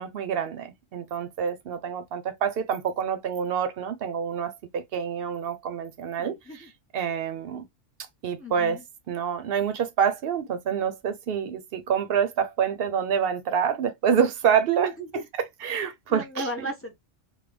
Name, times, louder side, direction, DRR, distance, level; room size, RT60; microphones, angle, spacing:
voice 1, 0.0-6.7 6.9-7.7 8.2-8.8 9.1-14.9 15.6-16.7, right 7 dB, 60° right, 0.7 m, -27 dB
voice 2, 6.2-6.7 8.4-8.8 14.7-15.3 16.1-16.9, right 2 dB, 20° left, 0.3 m, -34 dB
3.2 x 2.2 x 3.2 m
omnidirectional pair, 1.3 m